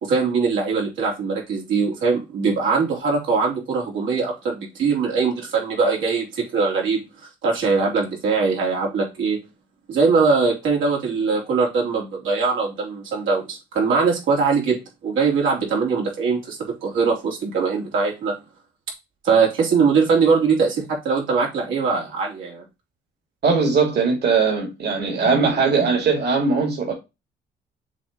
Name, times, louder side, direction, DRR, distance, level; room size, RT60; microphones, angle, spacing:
voice 1, 0.0-7.1 7.4-9.4 9.9-18.4 19.2-22.6, right 5 dB, 80° right, 3.4 m, -21 dB
voice 2, 23.4-26.9, right 4 dB, 55° right, 2.8 m, -20 dB
7.4 x 3.2 x 5.2 m
cardioid pair, 90°, 20 cm